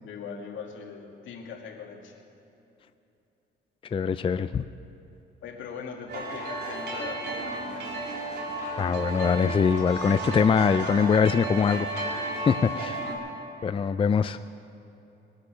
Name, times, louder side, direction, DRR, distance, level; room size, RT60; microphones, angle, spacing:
voice 1, 0.0-2.2 5.4-7.9 12.7-12.9, left 6 dB, 75° left, 1 dB, 2.4 m, -40 dB
voice 2, 3.9-4.6 8.8-11.9 12.5-13.0 13.6-14.4, left 6 dB, 25° left, 12 dB, 0.4 m, -23 dB
harp player, 6.1-13.2, right 2 dB, 60° right, 3.2 m, -33 dB
23.0 x 8.3 x 6.3 m, 2.9 s
cardioid pair, 90°, 20 cm